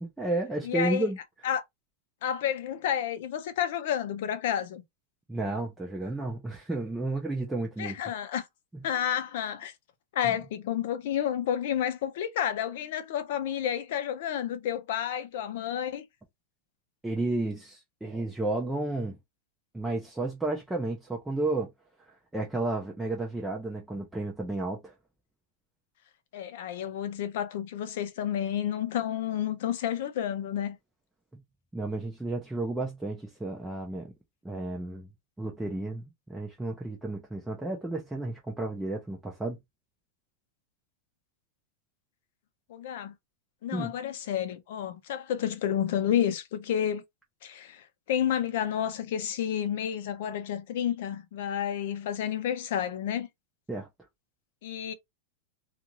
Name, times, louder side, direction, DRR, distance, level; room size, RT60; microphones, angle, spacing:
voice 1, 0.0-1.2 5.3-8.0 8.7-8.8 10.2-10.4 17.0-19.2 19.7-21.7 22.3-24.9 31.7-34.1 34.4-35.1 35.4-39.6 43.7-43.9 53.7-53.9, right 2 dB, 5° right, 0.5 m, -32 dB
voice 2, 0.6-1.1 1.4-1.6 2.2-4.8 7.8-8.5 8.8-9.7 10.1-16.1 26.3-30.8 42.7-43.1 43.6-47.0 47.4-53.3 54.6-54.9, left 9 dB, 60° left, 0.6 m, -30 dB
2.5 x 2.4 x 3.0 m
supercardioid pair, 165°, 0 cm